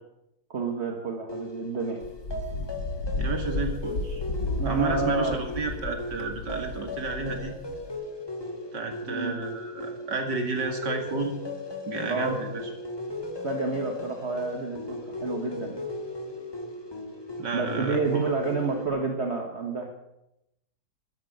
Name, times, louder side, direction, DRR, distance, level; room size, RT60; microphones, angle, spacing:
voice 1, 0.5-2.0 4.6-5.4 9.1-9.3 12.1-12.4 13.4-15.9 17.5-19.9, right 3 dB, 40° right, 3 dB, 1.7 m, -29 dB
sound 1, 1.3-18.9, left 2 dB, 15° left, 1.8 m, -38 dB
Wind, 2.0-7.9, left 2 dB, 65° left, 2.2 m, -33 dB
voice 2, 3.2-4.2 4.7-7.5 8.7-11.4 11.9-12.7 17.4-18.3, right 3 dB, 85° right, 4 dB, 2.8 m, -31 dB
13.0 x 10.5 x 7.9 m, 0.86 s
omnidirectional pair, 1.8 m